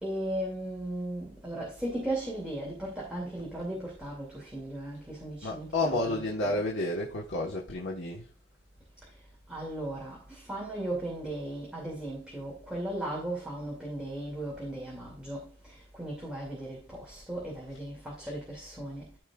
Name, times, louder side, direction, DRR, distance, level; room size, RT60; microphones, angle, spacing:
voice 1, 0.0-6.6 9.5-10.2 10.5-15.4 16.0-19.0, right 1 dB, 5° right, 2.4 m, -36 dB
voice 2, 5.4-8.3 17.7-17.8 18.2-18.4, left 2 dB, 90° left, 1.3 m, -31 dB
14.5 x 4.9 x 2.4 m
head